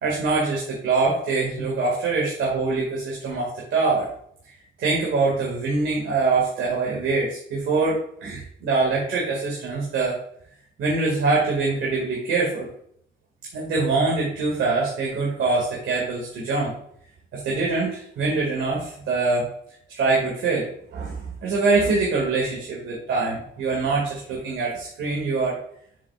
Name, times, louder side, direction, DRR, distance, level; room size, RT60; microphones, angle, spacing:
voice 1, 0.0-4.1 4.8-10.2 10.8-12.7 13.5-16.7 17.3-19.5 19.9-25.6, right 3 dB, 75° right, -4 dB, 2.2 m, -24 dB
7.3 x 7.2 x 2.4 m, 0.68 s
cardioid pair, 90°, 20 cm